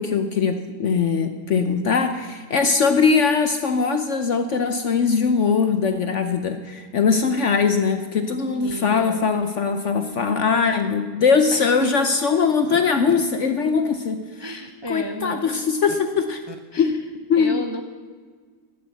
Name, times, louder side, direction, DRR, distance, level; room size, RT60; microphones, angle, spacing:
voice 1, 0.0-14.2 14.9-16.4 16.8-16.9 17.3-17.6, left 5 dB, 60° left, 8 dB, 0.8 m, -21 dB
voice 2, 8.5-9.2 11.5-11.9 14.4-15.6 16.5-17.0 17.3-17.8, equal, 35° right, 5 dB, 0.4 m, -33 dB
12.5 x 7.7 x 8.2 m, 1.5 s
omnidirectional pair, 1.9 m